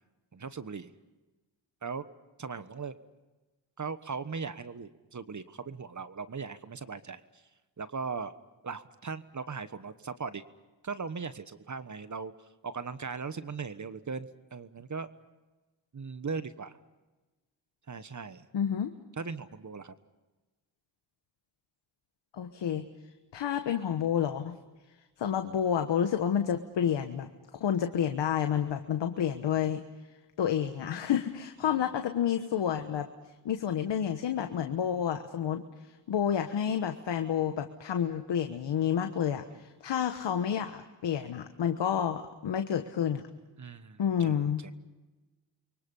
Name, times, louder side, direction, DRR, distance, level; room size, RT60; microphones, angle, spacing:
voice 1, 0.3-0.9 1.8-2.0 2.4-2.9 3.8-7.4 7.8-8.3 8.6-10.4 10.8-12.3 12.6-15.1 15.9-16.8 17.9-18.5 19.2-19.9 31.7-31.9 39.5-39.6 43.6-44.7, right 5 dB, 45° right, 12 dB, 1.3 m, -39 dB
voice 2, 18.5-18.9 22.3-22.8 23.3-24.6 25.2-27.3 27.6-29.8 30.4-33.1 33.4-35.6 36.1-43.2 44.0-44.6, left 8 dB, 85° left, 7 dB, 1.3 m, -29 dB
29.5 x 23.5 x 5.6 m, 1.1 s
cardioid pair, 55°, 42 cm